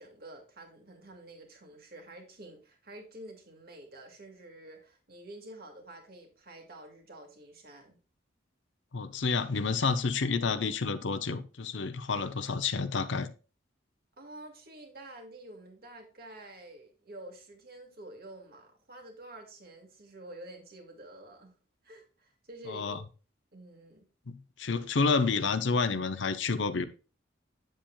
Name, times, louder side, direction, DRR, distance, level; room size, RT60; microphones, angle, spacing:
voice 1, 0.0-8.0 14.2-21.5 21.8-23.0 23.5-24.1, right 1 dB, 55° right, 2.1 m, -49 dB
voice 2, 8.9-13.3 22.6-23.0 24.3-26.8, left 4 dB, 70° left, 0.7 m, -29 dB
9.0 x 7.3 x 2.3 m
head